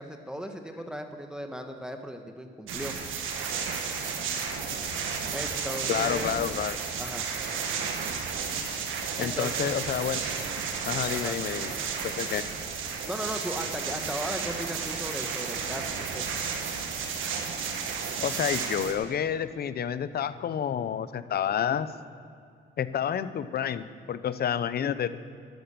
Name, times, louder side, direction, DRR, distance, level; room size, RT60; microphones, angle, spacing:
voice 1, 0.0-3.0 5.3-6.3 7.0-7.3 9.2-9.7 11.1-11.4 13.1-16.3, equal, 5° right, 5 dB, 1.1 m, -37 dB
sound 1, 2.7-18.9, right 6 dB, 90° right, 1.6 m, -32 dB
voice 2, 5.9-6.8 9.2-10.2 10.8-11.7 12.2-12.4 18.2-21.9 22.8-25.2, left 9 dB, 50° left, 14 dB, 0.7 m, -29 dB
12.0 x 10.5 x 7.0 m, 2.4 s
cardioid pair, 90°, 20 cm